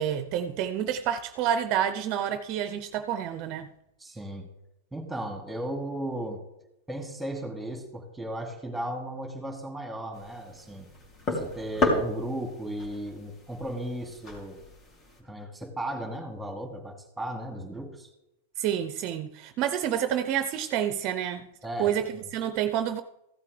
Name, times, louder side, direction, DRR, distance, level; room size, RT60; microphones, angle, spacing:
voice 1, 0.0-3.7 18.6-21.5 21.8-22.0 22.3-23.0, right 10 dB, 45° right, 0.7 m, -28 dB
voice 2, 4.0-4.5 4.9-6.4 6.9-10.9 11.3-14.6 15.2-18.1 21.6-22.3, right 1 dB, 5° right, 2.6 m, -35 dB
sound 1, 10.1-15.2, left 2 dB, 35° left, 3.2 m, -33 dB
15.5 x 8.3 x 3.4 m
hypercardioid pair, 115°, 0 cm